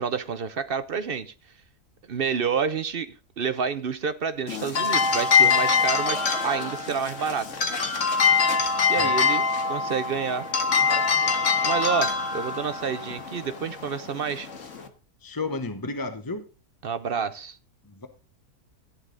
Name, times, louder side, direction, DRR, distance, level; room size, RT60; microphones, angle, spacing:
voice 1, 0.0-1.3 2.1-7.5 8.9-9.4 9.7-10.5 11.2-11.3 11.6-14.5 16.8-17.6, right 6 dB, 55° right, 0.7 m, -29 dB
sound 1, 4.5-14.9, left 5 dB, 55° left, 1.7 m, -24 dB
voice 2, 15.2-16.4 17.8-18.1, left 3 dB, 20° left, 0.7 m, -32 dB
14.5 x 9.6 x 3.8 m
omnidirectional pair, 1.6 m